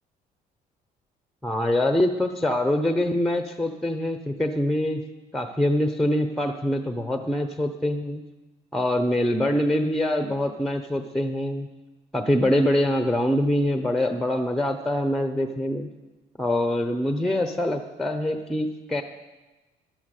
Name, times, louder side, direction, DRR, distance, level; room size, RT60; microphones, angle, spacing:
voice 1, 1.4-5.0 5.3-8.2 8.7-11.7 12.1-15.9 16.4-19.0, left 1 dB, ahead, 7 dB, 1.0 m, -24 dB
12.0 x 11.5 x 6.7 m, 1.1 s
cardioid pair, 110°, 17 cm